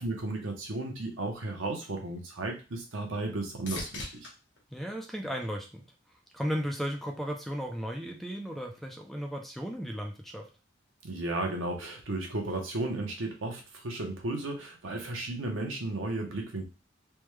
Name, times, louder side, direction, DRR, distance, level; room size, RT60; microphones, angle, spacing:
voice 1, 0.0-4.3 11.0-16.6, right 2 dB, 85° right, 2 dB, 0.8 m, -34 dB
sound 1, 2.6-6.1 6.7-7.3 15.1-15.2, left 2 dB, 70° left, 1.1 m, -46 dB
voice 2, 4.7-5.8 6.3-10.5, equal, ahead, 2 dB, 0.4 m, -35 dB
3.4 x 2.2 x 3.1 m, 0.31 s
head